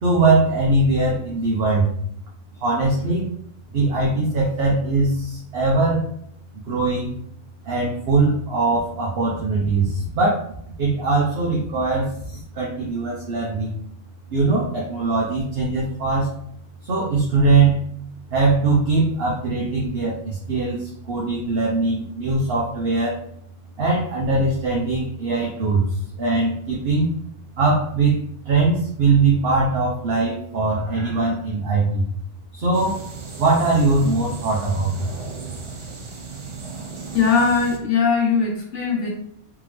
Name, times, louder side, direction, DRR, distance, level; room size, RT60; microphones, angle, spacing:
voice 1, 0.0-1.9 2.6-3.3 3.7-6.0 6.5-7.1 7.6-10.5 10.8-13.7 14.3-16.3 16.8-17.9 18.3-23.2 23.8-27.1 27.6-28.2 28.5-32.1 32.5-33.1 33.4-34.9, right 3 dB, 60° right, -3 dB, 1.0 m, -21 dB
sound 1, 32.7-37.8, right 5 dB, 40° right, 0.4 m, -36 dB
voice 2, 37.1-39.1, left 5 dB, 75° left, 0 dB, 1.3 m, -20 dB
3.6 x 3.4 x 3.3 m, 0.67 s
omnidirectional pair, 1.2 m